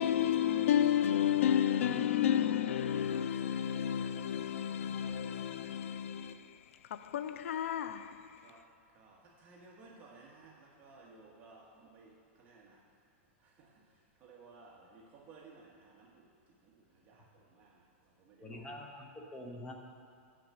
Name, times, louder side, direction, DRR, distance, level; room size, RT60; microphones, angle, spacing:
voice 1, 0.0-6.4 6.9-8.3, left 10 dB, 80° left, 0.5 m, -31 dB
voice 2, 8.4-12.8 13.4-16.3 16.6-19.0, right 3 dB, 25° right, 1.4 m, -58 dB
voice 3, 18.4-19.7, left 1 dB, 10° left, 0.9 m, -45 dB
7.1 x 6.0 x 7.7 m
supercardioid pair, 165°, 7 cm